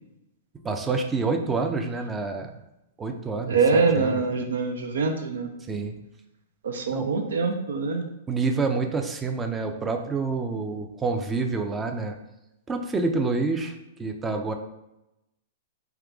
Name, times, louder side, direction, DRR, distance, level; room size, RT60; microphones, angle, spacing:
voice 1, 0.6-2.5 3.0-4.2 5.7-5.9 6.9-7.1 8.3-12.1 12.7-14.5, right 4 dB, 15° right, 5 dB, 0.5 m, -28 dB
voice 2, 3.5-5.5 6.6-8.1, right 4 dB, 70° right, 4 dB, 0.6 m, -24 dB
3.6 x 3.0 x 3.4 m, 0.89 s
hypercardioid pair, 110°, 0 cm